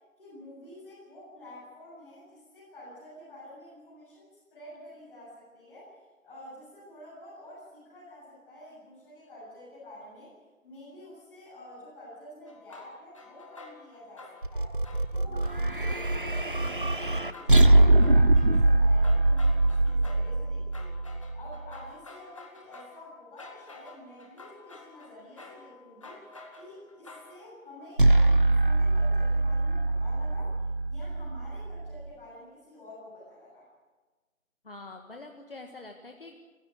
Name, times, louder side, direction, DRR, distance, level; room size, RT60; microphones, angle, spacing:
voice 1, 0.2-5.9 6.2-10.3 10.6-14.8 15.1-21.0 21.3-26.2 26.5-30.6 30.9-33.7, left 1 dB, 5° left, -11 dB, 7.4 m, -48 dB
sound 1, 12.5-14.6 14.8-17.1 17.3-27.4, left 3 dB, 25° left, 2.0 m, -50 dB
sound 2, 14.4-21.7 28.0-32.1, right 2 dB, 40° right, 0.7 m, -23 dB
voice 2, 34.6-36.4, left 2 dB, 40° left, 3 dB, 1.8 m, -45 dB
27.0 x 15.5 x 8.3 m, 1.3 s
figure-of-eight pair, 170°, 41 cm